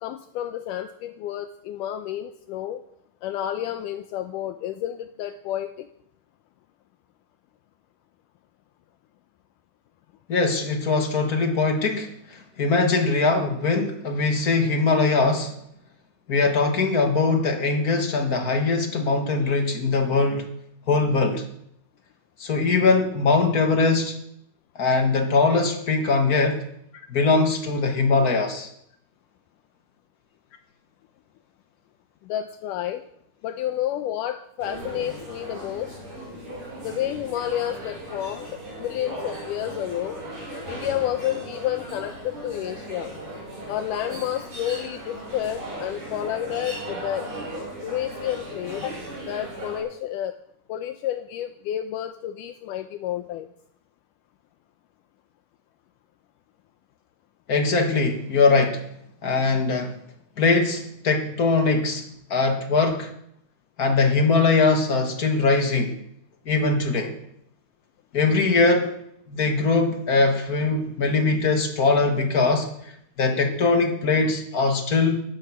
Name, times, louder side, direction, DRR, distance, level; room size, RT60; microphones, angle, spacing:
voice 1, 0.0-2.8 3.2-5.9 26.9-27.1 32.2-33.0 33.4-36.0 36.8-40.2 40.7-43.1 43.7-47.3 47.8-49.0 49.3-50.4 50.7-53.5 73.6-73.7, left 11 dB, 80° left, 7 dB, 2.3 m, -30 dB
voice 2, 10.3-12.1 12.6-15.5 16.3-20.5 20.9-21.4 22.4-24.1 24.8-26.6 27.1-28.7 57.5-58.8 59.2-59.9 60.4-62.0 62.3-63.1 63.8-66.0 66.4-67.1 68.1-68.9 69.3-72.7 73.2-75.2, left 3 dB, 35° left, 4 dB, 1.6 m, -21 dB
sound 1, 34.6-49.8, right 1 dB, 40° right, 8.1 m, -37 dB
14.5 x 11.5 x 6.1 m, 0.73 s
omnidirectional pair, 3.7 m